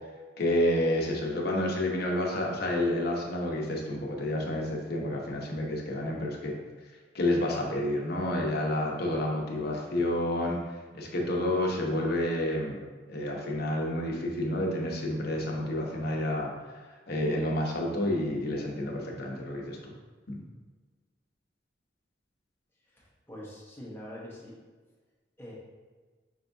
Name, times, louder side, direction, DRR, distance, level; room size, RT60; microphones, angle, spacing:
voice 1, 0.4-6.6 7.1-10.7 10.9-16.5 17.1-19.9 20.3-20.5, left 1 dB, 60° left, -1 dB, 0.8 m, -29 dB
voice 2, 22.9-24.6 25.4-25.5, equal, 15° left, -5 dB, 1.0 m, -44 dB
5.5 x 3.4 x 2.6 m, 1.4 s
head